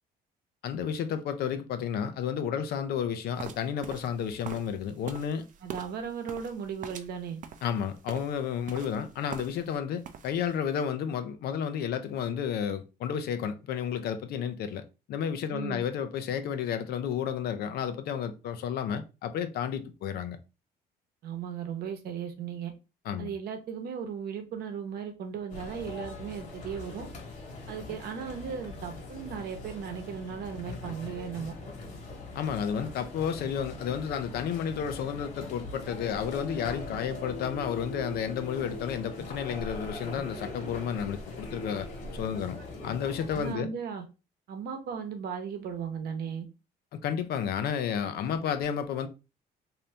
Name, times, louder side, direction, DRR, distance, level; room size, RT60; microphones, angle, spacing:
voice 1, 0.6-5.5 7.6-14.8 15.1-20.4 23.1-23.3 32.3-41.9 42.1-43.7 47.0-49.1, left 8 dB, 70° left, 0.6 m, -32 dB
sound 1, 3.4-9.8 10.0-10.5, right 7 dB, 50° right, 0.5 m, -44 dB
voice 2, 5.6-7.4 15.5-15.8 21.2-22.7 23.2-27.1 27.7-31.5 43.3-44.0 44.5-46.5, right 7 dB, 70° right, 0.9 m, -36 dB
sound 2, 25.5-43.5, left 2 dB, 45° left, 1.3 m, -41 dB
2.7 x 2.7 x 3.3 m
cardioid pair, 110°, 17 cm